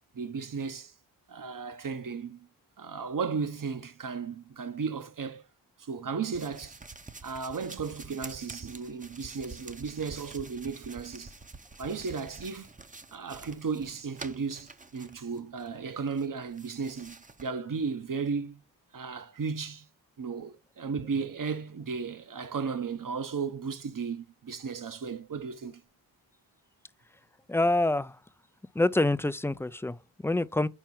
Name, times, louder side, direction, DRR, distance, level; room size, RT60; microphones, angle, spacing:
voice 1, 0.1-0.9 1.3-2.5 2.8-5.4 5.8-6.8 7.2-11.3 11.8-12.7 13.1-18.6 18.9-19.9 20.2-25.8, right 5 dB, 45° right, 1.0 m, -35 dB
sound 1, 6.3-15.7 16.1-17.5, right 3 dB, 20° right, 0.8 m, -47 dB
voice 2, 27.5-28.2 28.7-30.7, left 2 dB, 5° left, 0.3 m, -26 dB
4.6 x 4.6 x 5.9 m
supercardioid pair, 40°, 45 cm